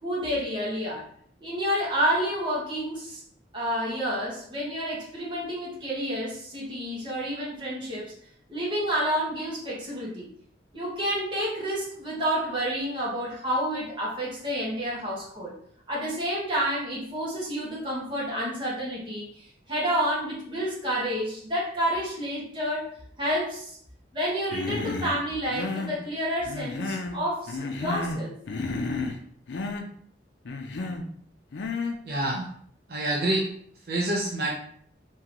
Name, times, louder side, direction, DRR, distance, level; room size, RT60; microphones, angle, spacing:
voice 1, 0.0-1.0 1.4-3.2 3.5-8.1 8.5-10.3 10.7-15.6 15.9-22.9 23.2-23.8 24.1-28.3, equal, 25° right, -6 dB, 1.2 m, -29 dB
Human voice, 24.5-25.2 25.5-26.0 26.4-27.2 27.5-28.2 28.5-29.2 29.5-29.8 30.4-31.0 31.5-32.0, left 3 dB, 75° left, 0.5 m, -31 dB
voice 2, 32.0-32.5 32.9-33.5 33.8-34.5, right 1 dB, 55° right, -3 dB, 0.6 m, -27 dB
3.7 x 2.8 x 2.9 m, 0.63 s
head